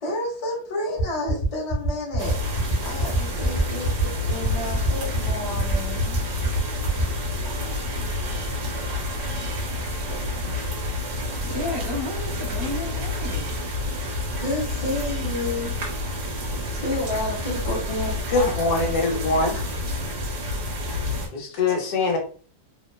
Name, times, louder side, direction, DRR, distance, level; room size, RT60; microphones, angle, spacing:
voice 1, 0.0-2.4 2.8-6.2 14.4-15.7 16.4-16.5 16.8-18.5, left 1 dB, 55° left, -2 dB, 0.3 m, -30 dB
sound 1, 1.0-7.0, right 1 dB, 35° left, 0.8 m, -25 dB
sound 2, 2.2-21.3, left 2 dB, 70° right, 1.1 m, -29 dB
voice 2, 11.4-13.5, left 2 dB, 35° right, -5 dB, 0.4 m, -32 dB
voice 3, 18.3-19.6 21.3-22.2, left 3 dB, 70° left, 2 dB, 1.2 m, -23 dB
2.9 x 2.0 x 2.3 m, 0.42 s
omnidirectional pair, 1.8 m